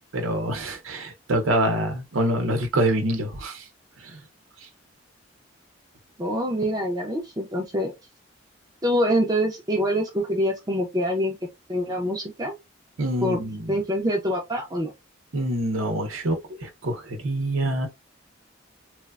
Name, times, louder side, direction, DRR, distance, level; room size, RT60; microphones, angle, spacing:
voice 1, 0.1-3.7 4.0-4.2 13.0-13.8 15.3-16.4 16.6-17.9, right 1 dB, 80° right, 0.7 m, -25 dB
voice 2, 6.2-7.9 8.8-11.3 11.7-12.5 13.2-14.9, equal, 20° right, 0.5 m, -25 dB
3.1 x 2.1 x 2.3 m
head